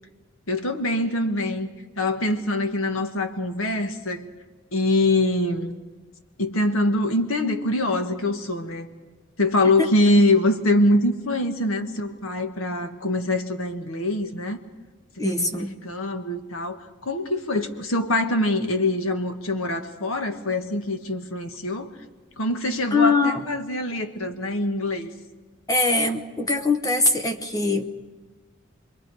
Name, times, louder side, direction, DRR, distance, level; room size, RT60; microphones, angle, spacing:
voice 1, 0.5-1.7 2.0-4.3 4.7-5.7 6.4-8.9 9.4-14.6 15.2-21.9 22.4-25.1, left 1 dB, 90° left, 6 dB, 1.6 m, -24 dB
voice 2, 15.2-15.8 22.9-23.4 25.7-27.9, left 3 dB, 20° left, 5 dB, 1.0 m, -22 dB
29.5 x 22.5 x 4.8 m, 1.3 s
head